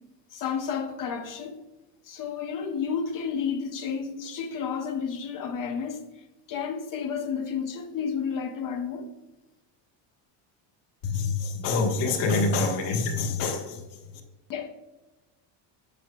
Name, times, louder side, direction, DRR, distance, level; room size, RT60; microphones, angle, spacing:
voice 1, 0.3-1.6 2.0-6.0 6.5-9.1 14.5-14.7, left 6 dB, 45° left, 0.8 m, -31 dB
voice 2, 11.0-14.2, left 3 dB, 60° left, 1.5 m, -26 dB
7.7 x 7.1 x 2.2 m
cardioid pair, 150°, 48 cm